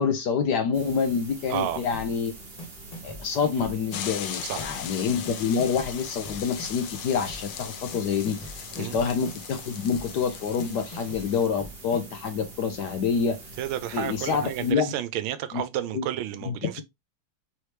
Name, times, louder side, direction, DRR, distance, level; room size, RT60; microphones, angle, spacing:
voice 1, 0.0-2.3 3.0-13.4 13.9-14.9 15.5-15.6 15.9-16.0 16.5-16.8, left 6 dB, 70° left, 1.1 m, -27 dB
sound 1, 0.7-14.7, right 2 dB, 35° right, 1.2 m, -45 dB
voice 2, 1.5-1.8 4.4-4.8 8.8-8.9 13.6-16.8, right 11 dB, 80° right, 1.4 m, -31 dB
sound 2, 1.9-2.3 2.6-4.3 4.6-5.0 5.2-7.0 7.2-7.6 7.9-9.6 9.9-10.3 10.6-12.3, equal, 45° left, 0.4 m, -42 dB
sound 3, 3.9-11.5, left 9 dB, 90° left, 1.5 m, -39 dB
4.2 x 3.1 x 3.2 m
omnidirectional pair, 2.2 m